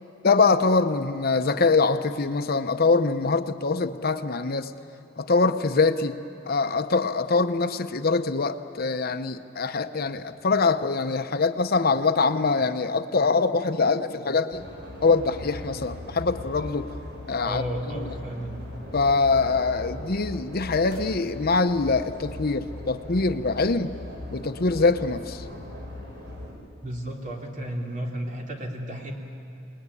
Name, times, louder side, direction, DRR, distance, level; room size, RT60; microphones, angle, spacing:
voice 1, 0.2-4.7 5.2-6.2 6.5-14.6 15.0-16.9 17.3-17.6 18.9-23.9 24.3-25.4, left 4 dB, 50° left, 9 dB, 0.8 m, -23 dB
sound 1, 14.5-26.5, left 1 dB, 60° right, 5.6 m, -39 dB
voice 2, 17.4-18.6 26.8-29.1, right 1 dB, 45° right, 0 dB, 3.3 m, -33 dB
26.5 x 20.5 x 9.9 m, 2.6 s
head